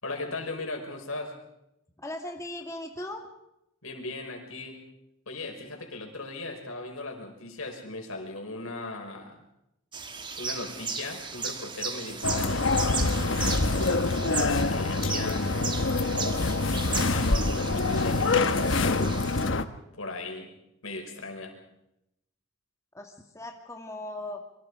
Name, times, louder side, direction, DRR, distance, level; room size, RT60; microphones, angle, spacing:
voice 1, 0.0-1.3 3.8-4.8 5.3-9.4 10.4-13.5 14.3-16.0 16.8-19.4 19.9-20.5 20.8-21.6, left 2 dB, 90° left, 3 dB, 5.4 m, -38 dB
voice 2, 2.0-3.3 22.9-24.4, left 1 dB, 15° left, 3 dB, 2.0 m, -38 dB
sound 1, 9.9-19.5, right 5 dB, 20° right, 1.7 m, -36 dB
sound 2, 12.2-19.6, left 3 dB, 65° left, 1.1 m, -25 dB
27.0 x 24.5 x 4.9 m, 0.84 s
head